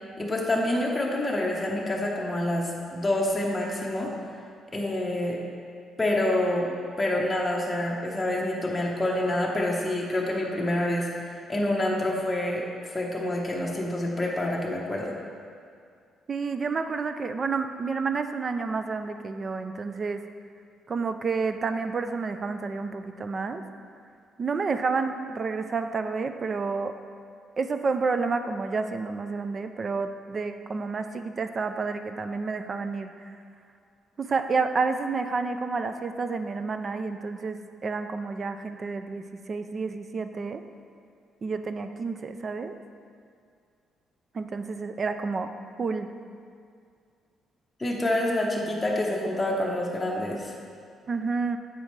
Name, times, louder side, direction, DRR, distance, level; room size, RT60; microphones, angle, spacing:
voice 1, 0.2-4.1 4.7-5.4 6.0-11.1 11.5-12.6 12.9-15.2 47.8-50.5, left 1 dB, 15° left, -3 dB, 0.8 m, -27 dB
voice 2, 16.3-20.2 20.9-23.6 24.4-26.9 27.6-33.1 34.2-40.6 41.4-42.7 44.3-45.5 45.8-46.1 51.1-51.6, right 4 dB, 40° right, 8 dB, 0.3 m, -30 dB
7.4 x 5.0 x 3.1 m, 2.3 s
cardioid pair, 105°, 0 cm